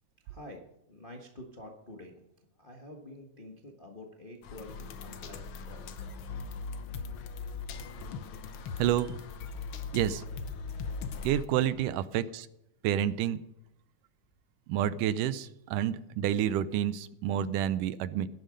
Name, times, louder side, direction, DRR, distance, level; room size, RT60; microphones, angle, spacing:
voice 1, 0.2-0.6 0.9-2.2 2.6-5.9, left 1 dB, 50° left, 1 dB, 0.6 m, -48 dB
sound 1, 4.4-11.4, left 4 dB, 90° left, 1.1 m, -39 dB
voice 2, 8.8-9.1 9.9-10.2 11.2-12.5 12.8-13.4 14.7-18.3, right 11 dB, 85° right, 15 dB, 2.2 m, -29 dB
16.5 x 11.0 x 5.2 m, 0.84 s
omnidirectional pair, 3.7 m